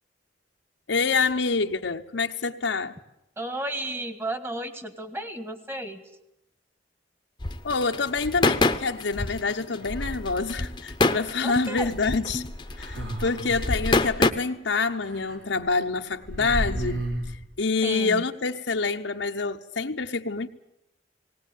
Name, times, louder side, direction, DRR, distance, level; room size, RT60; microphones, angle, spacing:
voice 1, 0.9-3.0 7.6-12.4 12.8-17.1 17.6-20.5, left 4 dB, 80° left, 0.9 m, -27 dB
voice 2, 3.4-6.0 11.4-11.9 17.8-18.2, right 1 dB, 15° right, 1.6 m, -33 dB
sound 1, 7.4-14.3, left 2 dB, 25° left, 0.9 m, -26 dB
sound 2, 9.8-10.9 12.4-14.2 15.0-15.4 15.7-15.8 16.1-17.4, equal, 75° right, 4.3 m, -33 dB
19.0 x 18.5 x 9.1 m
head